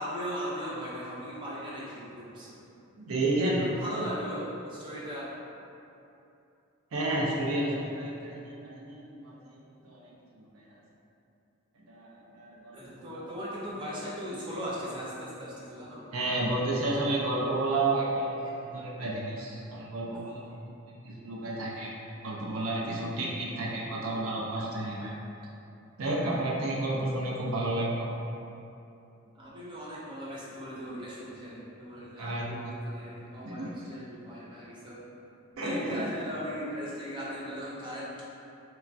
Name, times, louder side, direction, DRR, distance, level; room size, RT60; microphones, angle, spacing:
voice 1, 0.0-2.7 3.6-5.3 12.7-16.1 18.4-19.1 19.3-19.4 22.0-22.9 26.3-26.5 29.3-35.0 35.6-38.2, equal, 20° right, -7 dB, 0.5 m, -39 dB
voice 2, 3.0-3.6 6.9-9.5 9.8-10.7 11.9-13.3 16.1-20.7 21.0-21.9 22.2-25.1 26.0-28.1 32.2-32.7 33.4-33.7 35.6-36.1, right 2 dB, 80° right, -4 dB, 0.4 m, -31 dB
3.0 x 2.2 x 2.5 m, 2.7 s
head